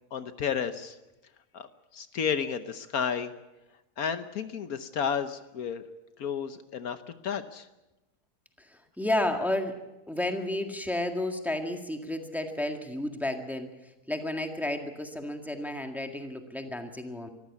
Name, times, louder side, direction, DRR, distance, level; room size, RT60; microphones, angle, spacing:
voice 1, 0.1-0.9 1.5-3.3 4.0-5.8 6.2-7.0 7.2-7.7, left 7 dB, 70° left, 10 dB, 1.3 m, -32 dB
voice 2, 8.6-9.8 10.1-13.7 14.1-17.3, left 1 dB, ahead, 4 dB, 1.7 m, -32 dB
24.0 x 15.0 x 8.4 m, 0.99 s
omnidirectional pair, 1.7 m